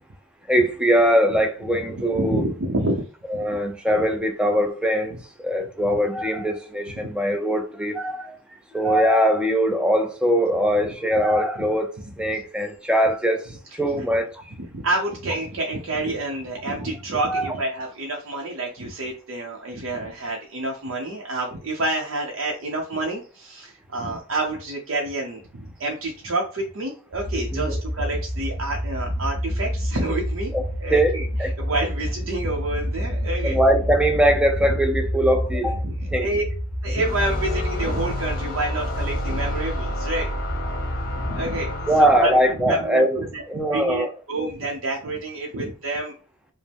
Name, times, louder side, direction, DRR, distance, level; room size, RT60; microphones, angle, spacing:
voice 1, 0.5-2.4 3.3-14.4 17.2-17.5 27.5-27.7 30.5-30.6 30.9-31.5 33.4-35.8 36.1-36.3 41.9-44.1, equal, 5° right, 0.5 m, -22 dB
voice 2, 2.1-3.1 3.5-3.6 6.9-7.1 12.3-12.4 13.9-14.1 14.6-30.5 30.8-33.6 35.6-36.4 36.8-40.3 40.9-43.4 43.7-46.1, right 2 dB, 75° right, 0.7 m, -28 dB
Big Bang, 27.1-41.8, equal, 10° left, 0.9 m, -29 dB
sound 1, 37.0-42.7, left 1 dB, 45° left, 0.9 m, -30 dB
5.1 x 2.1 x 3.4 m
head